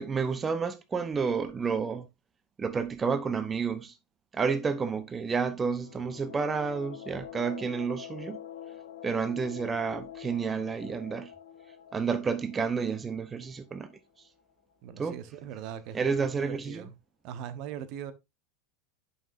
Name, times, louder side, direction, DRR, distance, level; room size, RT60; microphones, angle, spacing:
voice 1, 0.0-2.1 2.6-4.0 4.3-8.4 9.0-11.3 11.9-13.9 15.0-15.2 15.9-16.9, right 5 dB, 20° right, 0.8 m, -30 dB
sound 1, 5.6-14.2, left 9 dB, 70° left, 1.0 m, -46 dB
voice 2, 14.8-16.9 17.2-18.1, right 9 dB, 50° right, 0.8 m, -40 dB
11.0 x 5.6 x 2.6 m
figure-of-eight pair, 85°, 0 cm